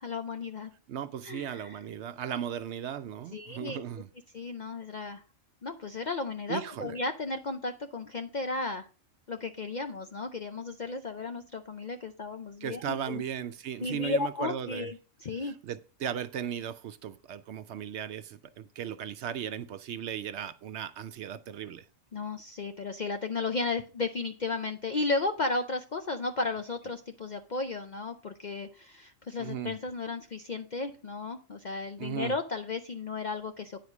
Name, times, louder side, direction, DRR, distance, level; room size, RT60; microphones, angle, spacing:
voice 1, 0.0-0.7 1.2-1.8 3.3-3.8 4.3-5.2 5.6-8.9 9.3-13.2 13.8-15.5 22.1-33.8, left 3 dB, 50° left, 0.5 m, -34 dB
voice 2, 0.9-4.1 6.5-7.0 12.6-14.9 15.4-21.8 29.4-29.7 32.0-32.3, right 9 dB, 65° right, 0.8 m, -36 dB
9.6 x 4.2 x 6.0 m
omnidirectional pair, 1.4 m